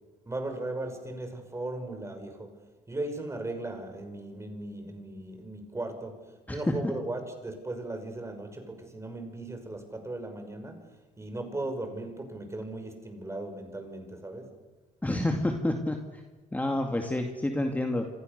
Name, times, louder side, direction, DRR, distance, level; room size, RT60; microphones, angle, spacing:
voice 1, 0.3-2.5 2.9-14.5, right 2 dB, 15° right, 6 dB, 5.8 m, -37 dB
voice 2, 15.0-16.2 16.5-18.1, left 1 dB, 10° left, 3 dB, 2.4 m, -29 dB
27.0 x 26.5 x 6.8 m, 1.2 s
cardioid pair, 110°, 17 cm